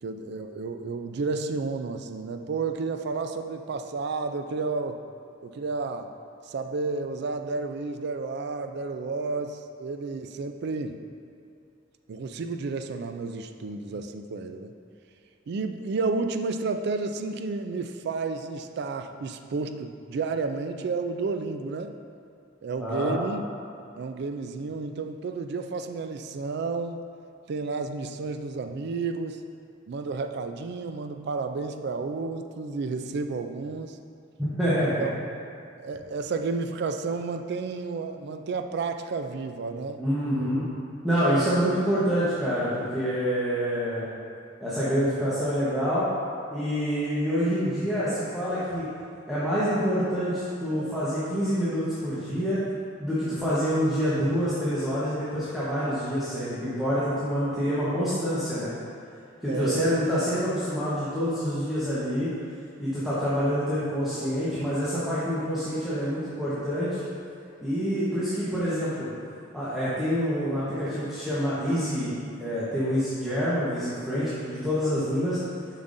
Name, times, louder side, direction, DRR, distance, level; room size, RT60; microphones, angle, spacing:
voice 1, 0.0-5.0 5.4-6.1 6.5-11.0 12.1-14.7 15.5-21.9 22.6-23.4 23.9-27.0 27.5-29.4 29.9-34.0 34.8-35.1 35.8-40.0 41.2-41.5 59.5-59.9, right 4 dB, 60° right, 7 dB, 0.4 m, -31 dB
voice 2, 22.8-23.2 34.4-35.1 40.0-40.7 41.0-44.1 44.6-46.1 46.5-48.9 49.3-52.6 53.0-58.7 59.4-62.3 62.8-67.0 67.6-69.1 69.5-72.1 72.4-75.4, equal, ahead, -13 dB, 1.0 m, -27 dB
7.0 x 5.6 x 2.6 m, 2.4 s
head